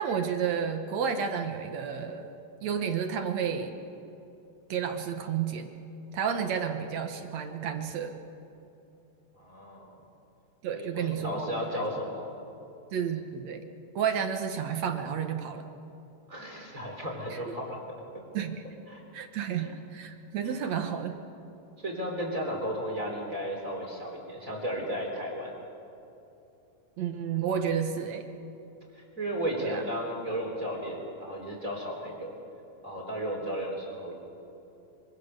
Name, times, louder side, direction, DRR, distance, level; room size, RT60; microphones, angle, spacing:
voice 1, 0.0-2.3 2.6-3.7 4.7-5.7 6.1-8.1 10.6-11.8 12.9-13.6 14.0-15.7 17.3-17.6 18.3-18.7 19.1-21.2 27.0-28.3 29.6-29.8, right 7 dB, 65° right, 6 dB, 2.2 m, -31 dB
voice 2, 9.4-9.9 10.7-12.3 16.3-17.8 18.9-19.0 19.6-19.7 20.4-20.5 21.8-25.5 28.9-32.4 32.8-34.1, equal, 25° right, -1 dB, 3.8 m, -34 dB
25.0 x 24.5 x 6.7 m, 2.8 s
omnidirectional pair, 3.8 m